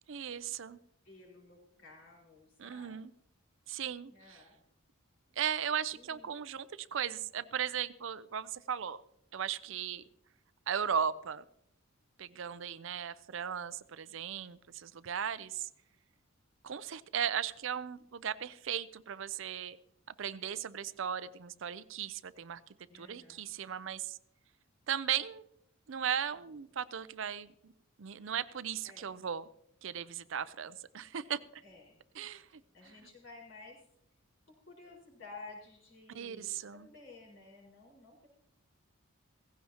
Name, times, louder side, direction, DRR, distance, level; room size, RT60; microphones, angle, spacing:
voice 1, 0.1-0.8 2.6-3.1 3.7-4.4 5.4-9.0 9.3-10.0 10.7-11.4 12.2-15.7 16.6-19.8 20.2-22.6 22.9-24.2 24.9-25.4 25.9-27.7 28.0-29.5 29.8-31.6 32.2-32.6 36.1-36.9, right 8 dB, 60° right, 16 dB, 0.5 m, -37 dB
voice 2, 1.0-3.1 4.1-4.6 5.3-5.4 5.9-6.3 22.9-23.4 28.8-29.1 31.6-32.0 32.7-33.8 34.5-38.3, left 3 dB, 55° left, -2 dB, 4.9 m, -53 dB
17.0 x 16.0 x 2.9 m, 0.76 s
head